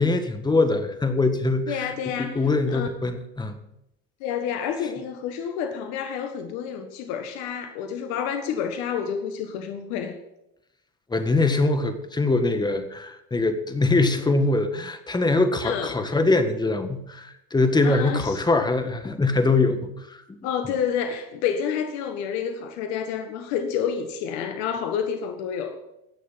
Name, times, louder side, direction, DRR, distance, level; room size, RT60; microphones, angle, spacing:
voice 1, 0.0-3.6 11.1-20.2, left 3 dB, 15° left, 8 dB, 1.6 m, -23 dB
voice 2, 1.7-2.4 2.7-2.9 4.2-10.2 15.6-16.0 17.8-18.4 20.4-25.8, left 7 dB, 70° left, 7 dB, 1.5 m, -29 dB
18.0 x 6.6 x 5.7 m, 0.85 s
supercardioid pair, 90°, 30 cm